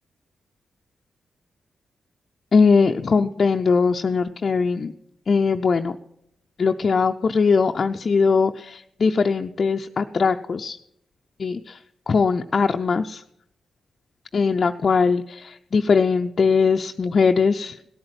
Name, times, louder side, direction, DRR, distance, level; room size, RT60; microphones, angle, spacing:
voice 1, 2.5-4.9 5.3-6.0 6.6-10.8 11.4-11.8 12.1-13.2 14.3-17.8, left 5 dB, 55° left, 3 dB, 0.6 m, -20 dB
17.5 x 8.8 x 7.7 m, 0.77 s
supercardioid pair, 45°, 0 cm